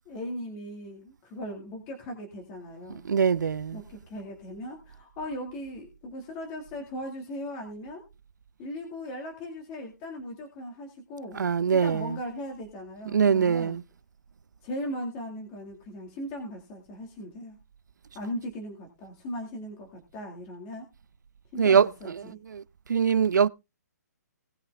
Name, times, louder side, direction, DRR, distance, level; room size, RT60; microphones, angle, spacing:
voice 1, 0.1-3.1 3.7-8.0 8.6-11.4 11.8-13.8 14.6-17.6 18.1-20.9 21.5-22.4, equal, 15° left, 2.1 m, -38 dB
voice 2, 3.0-3.8 11.3-12.1 13.1-13.8 21.6-22.6 22.9-23.5, right 7 dB, 85° right, 0.7 m, -23 dB
19.0 x 6.7 x 3.5 m
hypercardioid pair, 175°, 9 cm